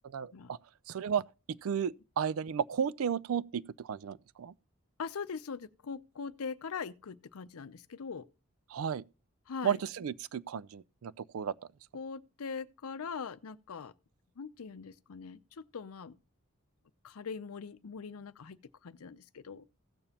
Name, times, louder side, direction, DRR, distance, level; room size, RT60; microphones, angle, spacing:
voice 1, 0.0-0.6 0.9-1.2 1.5-4.5 8.7-9.0 9.6-11.5, right 7 dB, 75° right, 0.4 m, -33 dB
voice 2, 5.0-8.2 9.5-9.8 11.9-13.9 14.4-16.2 17.0-19.7, left 5 dB, 80° left, 0.6 m, -41 dB
16.5 x 6.9 x 2.8 m
head